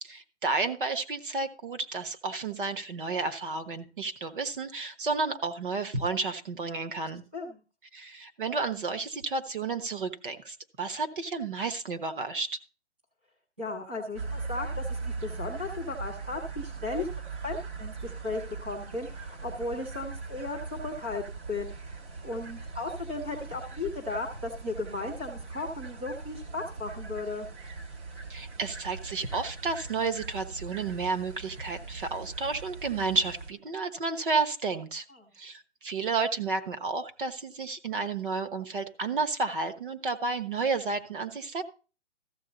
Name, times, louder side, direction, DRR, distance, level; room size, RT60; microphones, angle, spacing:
voice 1, 0.0-7.2 7.9-12.6 28.3-35.0 35.4-41.6, right 4 dB, 50° right, 9 dB, 1.1 m, -31 dB
voice 2, 7.3-7.6 13.6-17.1 17.4-21.8 22.2-27.5 35.1-35.3, left 3 dB, 10° right, -4 dB, 0.5 m, -35 dB
sound 1, 14.1-33.5, right 4 dB, 75° right, 2.3 m, -40 dB
14.0 x 7.2 x 3.9 m, 0.36 s
hypercardioid pair, 175°, 35 cm